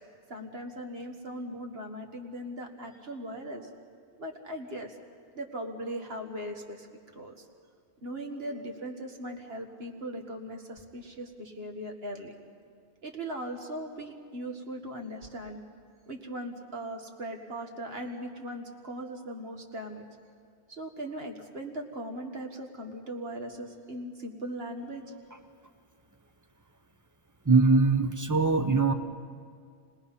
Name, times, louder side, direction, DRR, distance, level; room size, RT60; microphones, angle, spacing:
voice 1, 0.3-3.7 4.2-5.0 5.4-6.9 7.2-7.5 8.0-12.3 13.0-15.6 16.1-20.0 20.7-25.0, right 1 dB, 55° right, 2 dB, 2.0 m, -39 dB
voice 2, 27.5-28.9, right 4 dB, 15° right, 8 dB, 0.8 m, -22 dB
29.5 x 20.0 x 5.7 m, 2.2 s
omnidirectional pair, 1.2 m